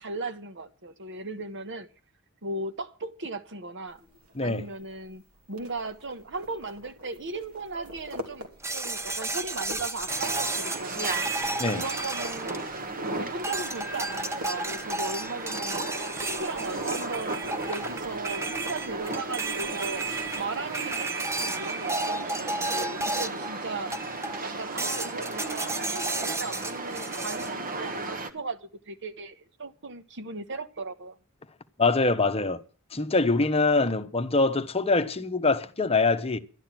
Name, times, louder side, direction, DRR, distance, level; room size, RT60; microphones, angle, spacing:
voice 1, 0.0-1.9 2.4-4.0 4.4-5.2 5.5-11.3 11.7-12.7 13.0-31.2, right 3 dB, 55° right, 1.3 m, -37 dB
sound 1, 3.9-20.6, equal, 70° right, 3.0 m, -48 dB
sound 2, 8.6-13.0 13.4-23.5 23.9-24.4 24.8-27.5, right 2 dB, 10° right, 0.9 m, -33 dB
sound 3, 10.1-28.3, right 3 dB, 40° right, 1.5 m, -35 dB
voice 2, 31.8-32.6 32.9-36.4, left 3 dB, 25° left, 1.0 m, -24 dB
12.5 x 11.5 x 6.0 m
head